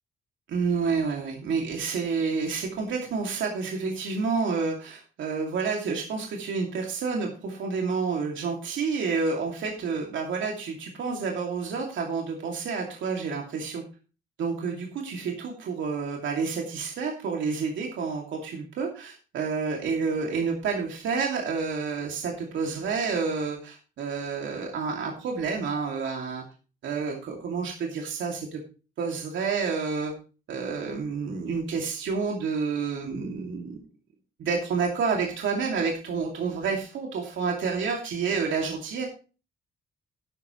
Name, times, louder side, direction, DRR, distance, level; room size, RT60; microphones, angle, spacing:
voice 1, 0.5-13.8 14.4-26.4 26.8-28.6 29.0-30.1 30.5-33.8 34.4-39.1, right 5 dB, 70° right, 0 dB, 2.6 m, -29 dB
12.0 x 11.0 x 3.2 m, 0.36 s
cardioid pair, 90°, 20 cm